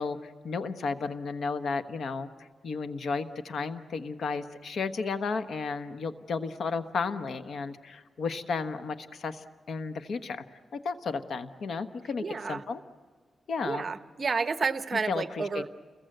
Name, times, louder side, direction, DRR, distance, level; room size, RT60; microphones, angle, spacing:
voice 1, 0.0-10.4 10.7-12.8 13.5-13.9 15.1-15.7, left 4 dB, 75° left, 9 dB, 1.2 m, -33 dB
voice 2, 12.2-12.6 13.6-15.7, right 4 dB, 45° right, 11 dB, 0.9 m, -30 dB
29.5 x 22.0 x 7.9 m, 1.5 s
cardioid pair, 95°, 0 cm